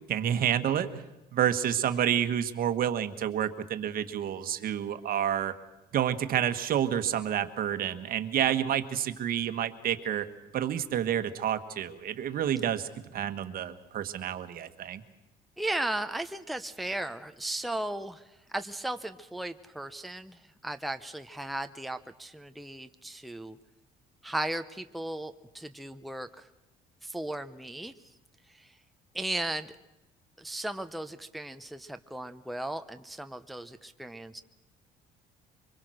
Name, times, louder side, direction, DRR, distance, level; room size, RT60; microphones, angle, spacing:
voice 1, 0.1-1.0 1.3-5.5 5.9-10.3 10.5-15.0, right 10 dB, 60° right, 10 dB, 1.5 m, -29 dB
voice 2, 15.6-23.6 24.2-26.5 27.0-27.9 28.5-28.8 29.1-29.8 30.4-34.4, right 1 dB, ahead, 8 dB, 0.8 m, -36 dB
24.5 x 22.0 x 6.4 m, 0.99 s
cardioid pair, 110°, 17 cm